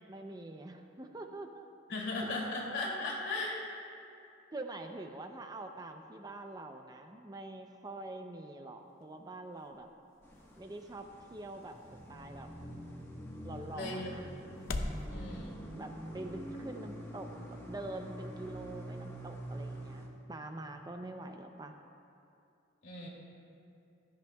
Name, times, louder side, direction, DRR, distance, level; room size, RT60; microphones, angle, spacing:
voice 1, 0.1-1.7 2.2-2.4 4.5-9.9 10.6-11.8 12.1-12.5 13.4-14.3 14.7-21.7, right 2 dB, 20° right, 5 dB, 0.5 m, -45 dB
voice 2, 1.9-3.6 13.7-14.5 15.1-15.8 22.8-23.1, left 2 dB, 65° left, -3 dB, 2.6 m, -37 dB
sound 1, 8.8-15.1, left 2 dB, 85° left, 0.7 m, -46 dB
sound 2, 10.2-20.1, equal, 15° left, 1.2 m, -46 dB
16.0 x 13.5 x 2.3 m, 2.6 s
head